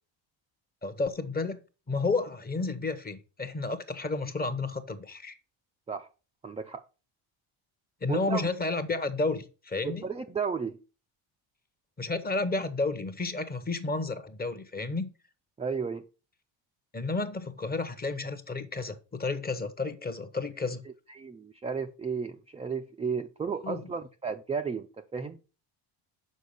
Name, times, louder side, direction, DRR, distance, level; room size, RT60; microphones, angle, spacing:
voice 1, 0.8-1.6 1.9-5.4 8.0-10.1 12.0-15.1 16.9-20.8 23.6-23.8, left 3 dB, 20° left, 0.8 m, -31 dB
voice 2, 6.4-6.8 8.1-8.5 9.8-10.8 15.6-16.1 21.1-24.9 25.1-25.4, right 5 dB, 15° right, 0.3 m, -33 dB
6.3 x 4.8 x 5.2 m
cardioid pair, 110°, 49 cm